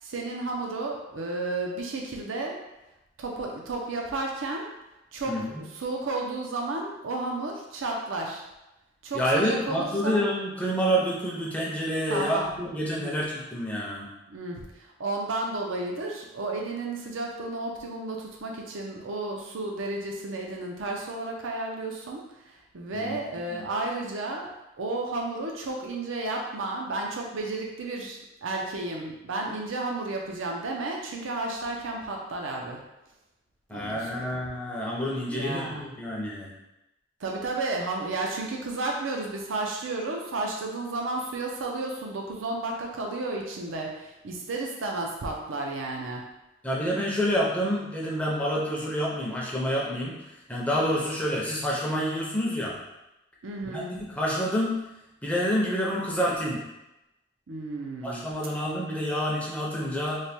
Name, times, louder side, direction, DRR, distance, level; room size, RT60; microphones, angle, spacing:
voice 1, 0.0-2.6 3.2-4.7 5.1-8.4 9.0-10.2 12.1-12.5 12.9-13.2 14.3-24.5 24.8-32.8 33.7-34.2 35.3-35.8 37.2-46.2 53.4-53.9 57.5-58.2, right 2 dB, 80° right, 0 dB, 0.5 m, -32 dB
voice 2, 5.3-5.6 9.1-14.1 22.9-23.2 23.5-23.7 33.7-36.6 46.6-50.2 50.5-52.8 53.7-54.8 55.2-56.6 58.0-60.2, equal, 5° left, -4 dB, 0.5 m, -28 dB
3.2 x 2.2 x 4.1 m, 0.94 s
head